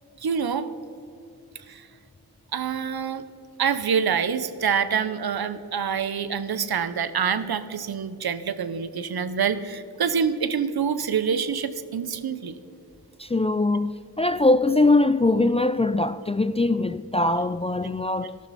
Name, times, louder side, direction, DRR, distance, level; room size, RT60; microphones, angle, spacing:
voice 1, 0.2-0.7 1.7-1.8 2.5-3.2 3.6-12.6, right 7 dB, 70° right, 0.8 m, -26 dB
voice 2, 13.2-18.4, left 2 dB, 15° left, 0.3 m, -22 dB
13.0 x 12.0 x 4.2 m
cardioid pair, 45°, 39 cm